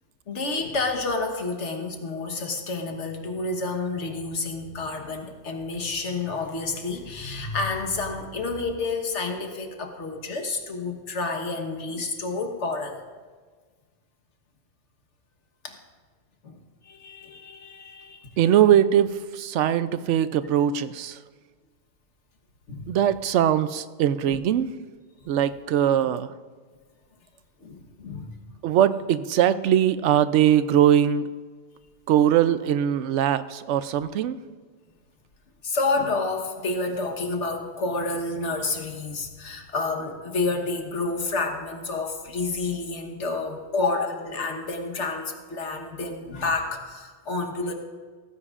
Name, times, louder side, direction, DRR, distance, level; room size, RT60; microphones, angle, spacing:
voice 1, 0.3-13.0 15.6-15.8 16.4-16.6 16.8-18.4 22.7-22.9 24.2-24.4 26.0-26.1 27.6-28.3 35.6-47.7, left 3 dB, 75° left, 4 dB, 1.6 m, -29 dB
voice 2, 18.4-21.2 22.9-24.7 25.3-26.3 28.6-31.3 32.1-34.4, right 10 dB, 80° right, 14 dB, 0.9 m, -21 dB
17.0 x 15.0 x 2.5 m, 1.5 s
omnidirectional pair, 1.2 m